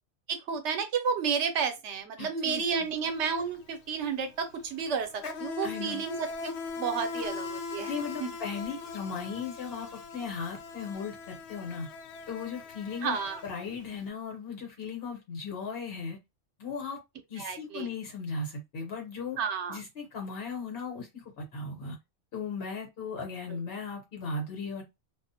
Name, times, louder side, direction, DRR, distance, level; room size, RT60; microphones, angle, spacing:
voice 1, 0.3-7.9 8.2-8.3 13.0-13.4 17.4-17.9 19.4-19.8, right 6 dB, 85° right, 0.9 m, -31 dB
voice 2, 2.2-2.9 5.6-6.0 7.9-11.9 12.3-13.2 13.4-16.2 16.6-17.0 17.3-19.4 19.7-22.0 22.3-24.8, left 5 dB, 60° left, 1.1 m, -37 dB
Insect, 2.5-2.7 3.0-14.0, left 4 dB, 75° left, 0.8 m, -40 dB
2.4 x 2.1 x 2.7 m
omnidirectional pair, 1.2 m